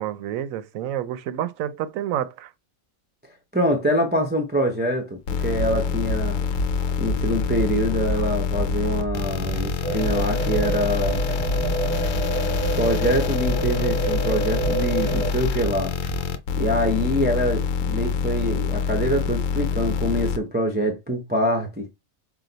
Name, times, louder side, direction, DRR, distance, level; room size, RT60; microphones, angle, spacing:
voice 1, 0.0-2.5, right 11 dB, 85° right, 1.0 m, -29 dB
voice 2, 3.5-6.4 7.0-11.2 12.7-16.0 16.6-21.9, equal, 10° right, 0.5 m, -25 dB
sound 1, 5.3-20.4, left 6 dB, 75° left, 1.0 m, -26 dB
sound 2, 5.5-16.2, right 4 dB, 35° left, 1.5 m, -33 dB
sound 3, 9.8-15.3, right 4 dB, 5° left, 1.0 m, -28 dB
6.0 x 2.2 x 3.9 m
omnidirectional pair, 1.4 m